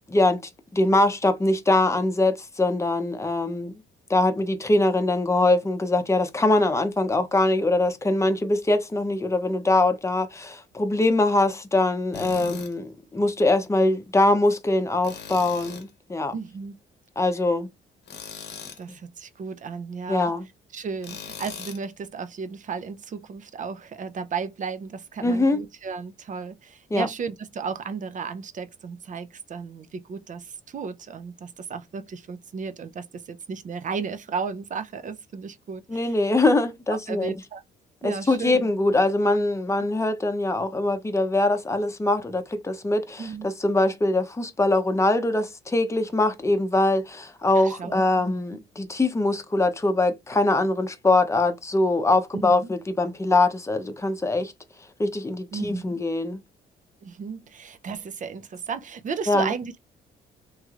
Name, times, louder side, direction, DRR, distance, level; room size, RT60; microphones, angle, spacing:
voice 1, 0.1-0.4 0.7-3.8 4.1-16.3 17.2-17.7 20.1-20.5 25.2-25.6 26.9-27.1 35.9-37.4 38.0-54.5 55.0-56.4 59.3-59.5, left 2 dB, 15° left, 0.7 m, -23 dB
Tools, 12.1-12.7 15.0-15.9 18.1-18.8 21.0-21.8, left 6 dB, 60° left, 0.9 m, -39 dB
voice 2, 16.3-16.8 18.8-20.3 20.7-36.1 36.9-37.6 38.0-38.7 43.2-43.5 47.6-48.3 52.3-52.7 55.5-55.8 57.0-59.8, right 5 dB, 40° right, 0.5 m, -34 dB
3.0 x 3.0 x 2.4 m
cardioid pair, 90°, 20 cm